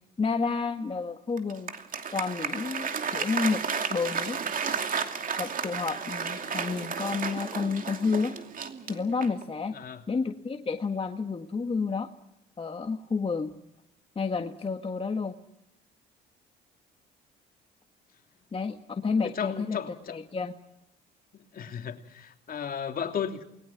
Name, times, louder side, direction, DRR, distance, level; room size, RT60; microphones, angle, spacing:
voice 1, 0.2-1.7 2.1-3.6 3.9-4.4 5.4-8.3 8.9-9.8 10.1-12.1 12.6-13.5 14.1-15.4 18.5-19.8 20.1-20.5, left 4 dB, 30° left, 5 dB, 1.7 m, -30 dB
Applause, 1.4-9.5, right 6 dB, 45° right, 2.7 m, -33 dB
voice 2, 19.2-20.2 21.5-23.4, left 7 dB, 50° left, 5 dB, 3.1 m, -34 dB
29.0 x 21.0 x 6.0 m, 0.83 s
supercardioid pair, 80°, 19 cm